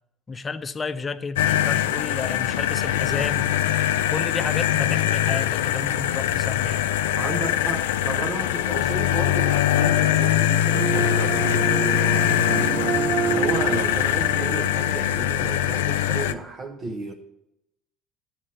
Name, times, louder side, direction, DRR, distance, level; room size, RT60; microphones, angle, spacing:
voice 1, 0.3-3.5 4.1-6.9, left 4 dB, 30° left, 0.6 m, -31 dB
sound 1, 1.4-16.3, left 11 dB, 90° left, 0.4 m, -22 dB
voice 2, 7.1-11.9 13.3-17.1, right 3 dB, 35° right, 0.9 m, -33 dB
sound 2, 10.7-16.1, right 6 dB, 55° right, 0.5 m, -29 dB
11.0 x 4.3 x 7.6 m
supercardioid pair, 80°, 0 cm